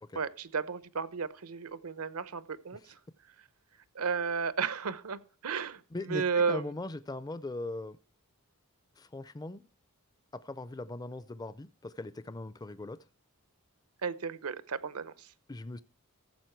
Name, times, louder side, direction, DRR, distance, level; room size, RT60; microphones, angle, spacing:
voice 1, 0.1-3.0 3.9-6.6 14.0-15.3, right 5 dB, 80° right, 0.9 m, -33 dB
voice 2, 5.9-6.2 6.5-8.0 9.0-9.7 10.3-13.0 15.5-15.8, left 2 dB, 15° left, 0.4 m, -40 dB
15.0 x 7.2 x 4.5 m
head